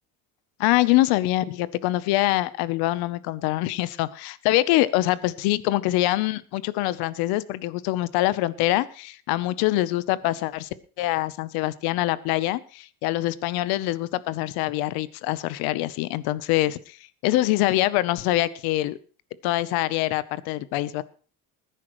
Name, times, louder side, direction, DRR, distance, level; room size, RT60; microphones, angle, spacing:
voice 1, 0.6-10.7 11.0-17.0 17.2-19.0 19.4-21.0, left 16 dB, 85° left, 0.9 m, -24 dB
20.0 x 10.5 x 3.1 m
cardioid pair, 140°, 37 cm